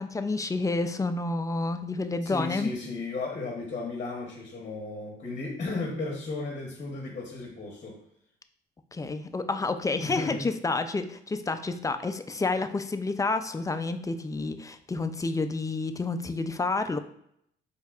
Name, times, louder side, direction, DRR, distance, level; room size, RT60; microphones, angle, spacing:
voice 1, 0.0-2.7 8.9-17.0, left 3 dB, 15° left, 9 dB, 0.3 m, -29 dB
voice 2, 2.2-8.0 10.0-10.4, left 3 dB, 40° left, 0 dB, 1.0 m, -35 dB
4.6 x 3.3 x 2.4 m, 0.71 s
cardioid pair, 90°, 20 cm